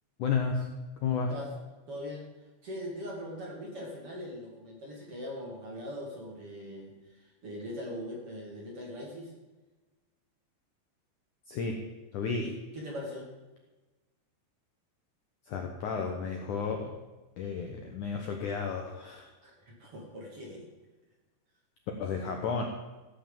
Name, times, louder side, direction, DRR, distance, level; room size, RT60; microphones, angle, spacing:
voice 1, 0.2-0.7 1.0-1.3 11.5-11.8 12.1-12.5 15.5-16.9 17.4-19.3 22.0-22.6, left 5 dB, 70° left, 3 dB, 2.0 m, -32 dB
voice 2, 1.9-2.3 2.6-9.3 12.4-13.3 19.4-20.6, equal, 40° right, -2 dB, 2.9 m, -41 dB
14.5 x 8.6 x 7.4 m, 1.2 s
omnidirectional pair, 5.0 m